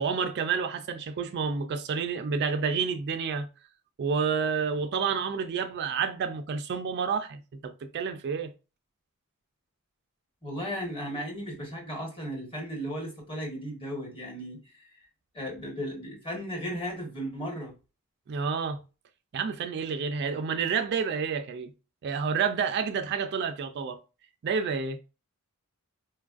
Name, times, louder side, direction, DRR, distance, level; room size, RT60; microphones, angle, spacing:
voice 1, 0.0-3.5 4.0-8.5 18.3-18.8 19.3-21.7 22.0-24.0 24.4-25.0, right 6 dB, 50° right, 0.3 m, -29 dB
voice 2, 10.4-15.0 15.3-17.7, equal, 25° left, 1.2 m, -35 dB
4.4 x 2.3 x 2.4 m
head